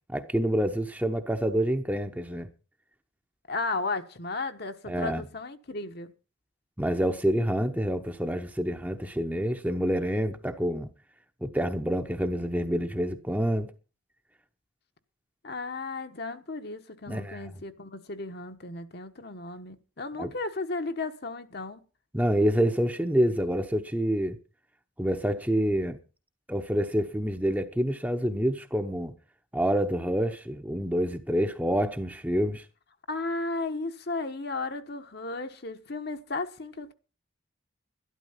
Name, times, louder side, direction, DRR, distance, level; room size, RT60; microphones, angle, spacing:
voice 1, 0.1-2.5 4.9-5.2 6.8-10.9 11.4-13.7 17.1-17.4 20.2-20.3 22.1-24.4 25.0-26.0 26.5-29.1 29.5-32.6, equal, 10° right, 0.9 m, -27 dB
voice 2, 3.5-6.1 15.4-21.8 33.1-36.9, left 3 dB, 50° left, 1.2 m, -34 dB
12.5 x 12.0 x 5.7 m
head